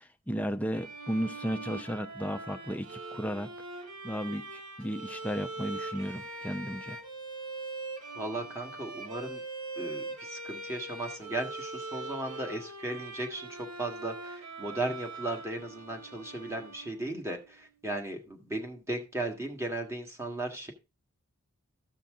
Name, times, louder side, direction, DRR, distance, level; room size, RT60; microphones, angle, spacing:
voice 1, 0.0-3.5 4.0-7.0, equal, 5° left, 0.5 m, -34 dB
Bowed string instrument, 0.7-17.3, right 3 dB, 75° right, 2.4 m, -42 dB
voice 2, 8.1-9.4 9.8-20.7, right 2 dB, 10° right, 1.7 m, -36 dB
14.5 x 5.8 x 3.6 m
head